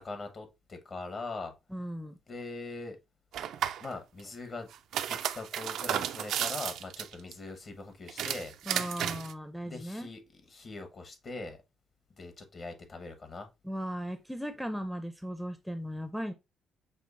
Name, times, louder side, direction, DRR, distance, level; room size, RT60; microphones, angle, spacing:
voice 1, 0.0-1.5 2.3-3.0 3.8-4.7 5.1-8.5 9.6-10.2 10.5-11.6 12.2-13.5, left 3 dB, 45° left, 1.2 m, -41 dB
voice 2, 1.7-2.2 8.7-10.1 13.6-16.3, equal, ahead, 0.5 m, -37 dB
sound 1, 3.3-3.9 4.7-7.3 8.1-9.3, right 10 dB, 75° right, 0.3 m, -33 dB
6.2 x 2.7 x 2.5 m
cardioid pair, 90°, 0 cm